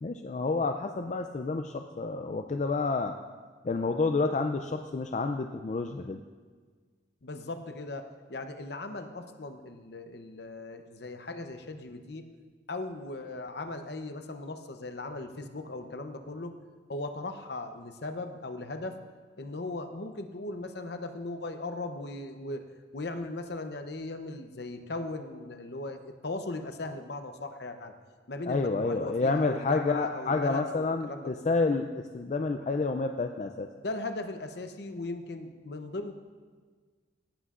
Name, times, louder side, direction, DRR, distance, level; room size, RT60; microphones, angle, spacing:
voice 1, 0.0-3.1 3.6-6.2 28.5-31.9 32.1-33.7, left 3 dB, 35° left, 5 dB, 0.3 m, -29 dB
voice 2, 7.2-12.2 12.7-16.5 16.9-19.0 19.4-22.6 22.9-27.9 28.3-31.5 33.7-36.1, left 2 dB, 55° left, 7 dB, 0.7 m, -38 dB
17.5 x 11.0 x 2.5 m, 1.5 s
head